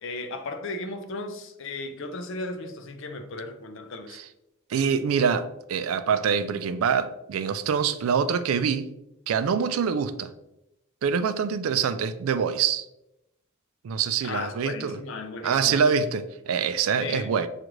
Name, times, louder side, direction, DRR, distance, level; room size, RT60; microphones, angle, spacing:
voice 1, 0.0-4.2 14.2-15.9 17.0-17.3, left 2 dB, 65° left, 7 dB, 0.5 m, -35 dB
voice 2, 4.7-8.9 9.3-10.3 11.0-12.8 13.8-15.0 15.4-17.5, right 6 dB, 80° right, 11 dB, 0.3 m, -25 dB
6.3 x 2.4 x 3.0 m, 0.86 s
head